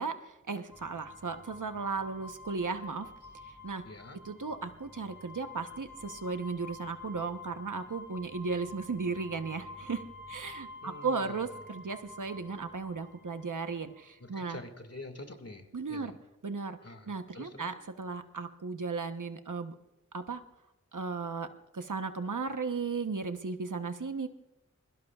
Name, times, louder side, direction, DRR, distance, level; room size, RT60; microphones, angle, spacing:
voice 1, 0.0-3.1 3.6-3.8 4.2-10.0 10.3-14.6 15.7-16.1 16.4-16.8 17.1-19.8 20.1-20.4 20.9-21.5 21.7-24.3, right 4 dB, 90° right, 8 dB, 1.0 m, -35 dB
sound 1, 0.7-14.1, left 2 dB, 5° right, 4.9 m, -49 dB
voice 2, 3.8-4.2 10.8-11.5 14.2-16.2 16.8-17.7, left 2 dB, 55° left, 6 dB, 2.0 m, -47 dB
27.5 x 21.5 x 2.4 m, 0.95 s
wide cardioid pair, 45°, 30 cm